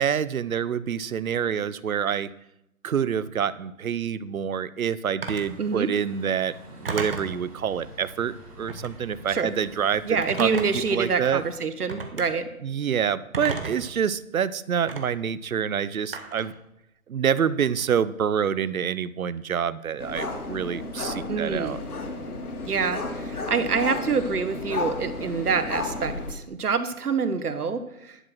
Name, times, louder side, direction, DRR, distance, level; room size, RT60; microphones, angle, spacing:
voice 1, 0.0-2.3 2.8-10.5 10.9-11.4 12.6-16.5 17.1-21.8, right 8 dB, 70° right, 17 dB, 0.7 m, -27 dB
Telephone, 5.2-5.5 6.8-7.4 8.6-9.0 10.2-10.9 11.9-12.3 13.3-13.9 14.9-15.0 16.1-16.5, right 4 dB, 40° right, 1.1 m, -32 dB
Truck, 5.3-11.5, right 1 dB, 25° right, 3.6 m, -46 dB
voice 2, 10.1-12.5 21.3-21.8 22.7-28.2, right 5 dB, 85° right, 11 dB, 1.2 m, -26 dB
sound 1, 20.0-26.3, left 3 dB, 80° left, 1.8 m, -33 dB
11.0 x 6.1 x 6.1 m, 0.83 s
hypercardioid pair, 170°, 44 cm